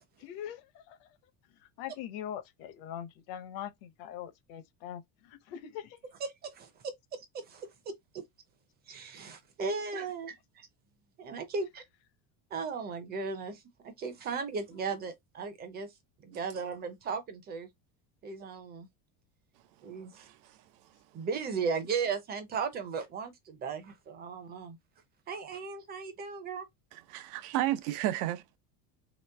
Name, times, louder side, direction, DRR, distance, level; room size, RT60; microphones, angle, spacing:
voice 1, 0.2-1.1 1.6-6.0 14.7-14.8, left 10 dB, 60° left, 0.8 m, -42 dB
voice 2, 6.2-7.7 8.1-8.2 8.9-10.7 11.2-11.8 12.5-15.9 16.2-17.7 18.2-18.9 19.8-20.3 21.1-24.8 25.3-26.7, right 5 dB, 25° right, 0.5 m, -36 dB
voice 3, 26.9-28.6, right 14 dB, 85° right, 0.7 m, -32 dB
3.1 x 3.0 x 3.3 m
cardioid pair, 165°, 42 cm